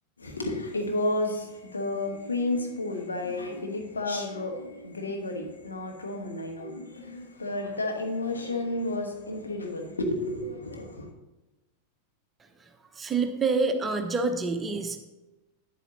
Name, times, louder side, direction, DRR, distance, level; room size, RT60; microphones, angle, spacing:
voice 1, 0.2-11.1, left 2 dB, 75° left, 2 dB, 1.3 m, -31 dB
voice 2, 12.9-15.0, right 4 dB, 15° right, 6 dB, 0.8 m, -27 dB
9.1 x 8.2 x 2.8 m, 1.1 s
figure-of-eight pair, 90°, 0 cm